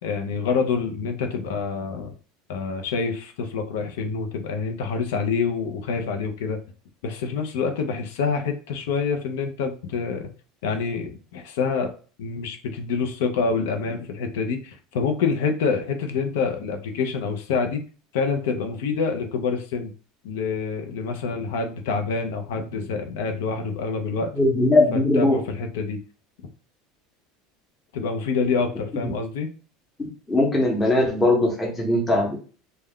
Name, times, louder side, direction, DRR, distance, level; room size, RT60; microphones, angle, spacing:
voice 1, 0.0-2.1 2.5-6.6 7.0-10.3 10.6-11.9 12.2-17.8 18.1-19.9 20.2-24.3 25.1-26.0 27.9-29.5, left 5 dB, 90° left, 5 dB, 0.5 m, -26 dB
voice 2, 24.4-25.4 30.0-32.4, left 2 dB, 10° left, 0 dB, 0.7 m, -20 dB
2.3 x 2.1 x 3.5 m, 0.38 s
supercardioid pair, 155°, 0 cm